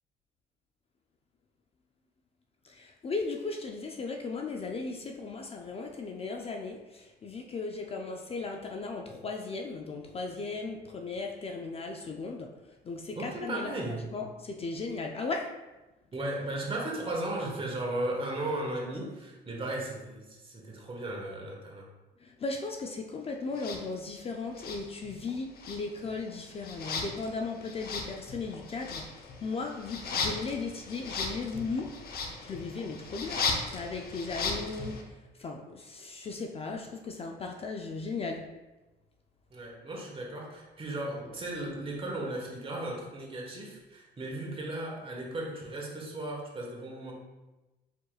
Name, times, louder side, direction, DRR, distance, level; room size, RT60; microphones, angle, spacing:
voice 1, 2.6-12.5 12.9-13.7 14.1-15.5 22.2-29.0 29.4-31.9 32.4-33.4 33.7-35.0 35.4-38.4, left 4 dB, 35° left, 2 dB, 0.4 m, -36 dB
voice 2, 13.1-14.1 16.1-21.9 39.5-47.1, right 1 dB, 30° right, -2 dB, 1.3 m, -36 dB
sound 1, 23.5-23.8 24.5-25.3 25.6-35.0, left 4 dB, 60° left, 0.8 m, -37 dB
4.6 x 4.6 x 2.4 m, 1.1 s
cardioid pair, 95°, 18 cm